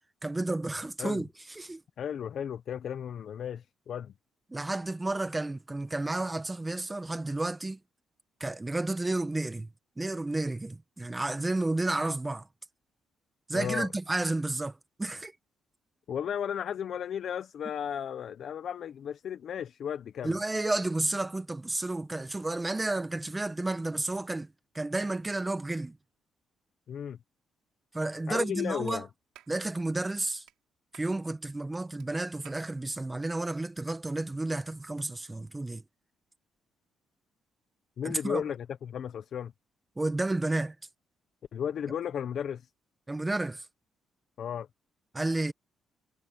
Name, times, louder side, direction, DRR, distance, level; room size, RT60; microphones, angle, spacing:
voice 1, 0.2-1.8 4.5-7.8 8.4-9.7 10.0-12.5 13.5-15.3 20.2-24.5 24.7-26.0 27.9-29.0 29.5-30.4 30.9-35.8 38.0-38.4 40.0-40.8 43.1-43.7 45.1-45.5, right 2 dB, 15° right, 1.6 m, -31 dB
voice 2, 2.0-4.1 13.5-13.9 16.1-20.4 26.9-27.2 28.3-29.1 38.0-39.5 41.5-42.7 44.4-44.7, left 8 dB, 65° left, 0.9 m, -34 dB
Clapping, 28.9-29.0 29.3-29.6 30.5-30.6 30.9-31.1 32.0-32.1 32.4-32.7, right 14 dB, 90° right, 7.2 m, -55 dB
cardioid pair, 90°, 0 cm